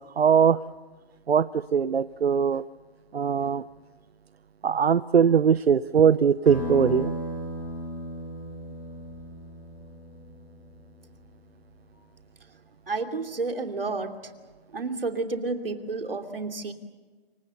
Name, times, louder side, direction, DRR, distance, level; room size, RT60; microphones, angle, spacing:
voice 1, 0.2-0.6 1.3-2.6 3.1-3.6 4.6-7.1, right 7 dB, 85° right, 16 dB, 0.8 m, -21 dB
sound 1, 6.5-11.6, left 1 dB, 20° left, 5.2 m, -36 dB
voice 2, 12.9-14.1 14.7-16.7, right 3 dB, 65° right, 5 dB, 2.9 m, -30 dB
28.0 x 24.5 x 7.0 m, 1.3 s
hypercardioid pair, 175°, 31 cm